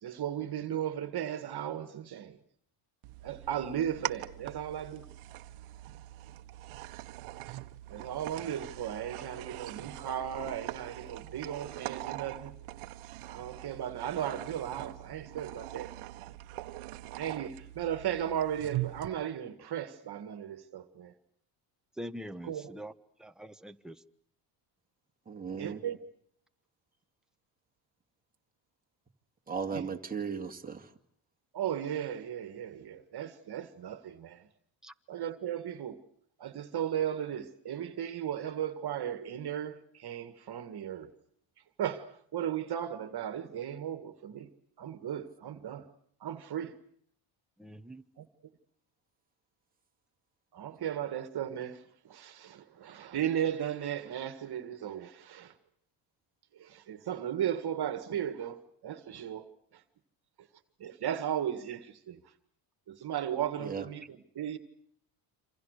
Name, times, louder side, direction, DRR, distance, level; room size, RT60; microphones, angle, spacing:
voice 1, 0.0-2.4 3.2-5.1 7.9-12.5 13.3-15.9 17.1-21.1 22.4-22.7 25.6-26.0 29.7-29.8 31.5-34.5 35.1-36.0 36.4-41.1 41.8-44.5 44.8-45.9 46.2-46.8 48.2-48.3 50.5-55.5 56.5-59.5 59.7-59.8 60.8-62.2 62.9-64.6, right 10 dB, 50° right, 1.9 m, -36 dB
sound 1, 3.0-19.1, right 17 dB, 80° right, 1.3 m, -42 dB
voice 2, 22.0-22.9 23.2-24.0 34.8-34.9 47.6-48.0, equal, ahead, 1.2 m, -43 dB
voice 3, 25.3-25.8 29.5-30.9 63.6-63.9, right 6 dB, 15° right, 2.2 m, -36 dB
28.0 x 26.5 x 6.6 m
cardioid pair, 110°, 49 cm